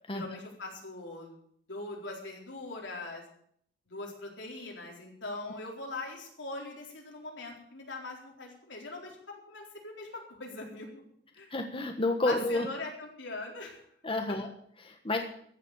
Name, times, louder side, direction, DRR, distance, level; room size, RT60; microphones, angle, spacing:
voice 1, 0.1-1.3 1.7-3.2 3.9-10.9 11.4-11.5 12.2-13.9, left 2 dB, 85° left, 0 dB, 4.1 m, -41 dB
voice 2, 11.5-12.7 14.0-14.5 14.8-15.2, left 2 dB, 30° left, 4 dB, 1.3 m, -30 dB
15.0 x 7.6 x 9.0 m, 0.66 s
head